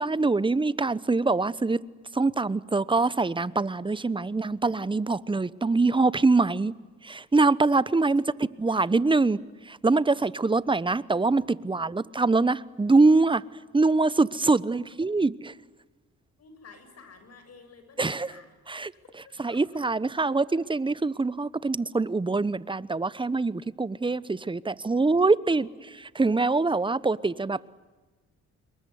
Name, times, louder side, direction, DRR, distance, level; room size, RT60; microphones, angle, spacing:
voice 1, 0.0-1.8 2.1-6.7 7.0-8.2 8.6-9.4 9.7-13.4 13.7-15.5 18.0-18.3 18.7-18.9 19.4-27.6, right 3 dB, 15° right, 1.0 m, -24 dB
voice 2, 7.9-8.9 11.4-12.2 14.6-15.0 16.3-19.8 20.2-20.4 24.8-26.0 27.3-27.7, left 3 dB, 55° left, 7.4 m, -54 dB
27.0 x 23.0 x 9.5 m
cardioid pair, 90°, 30 cm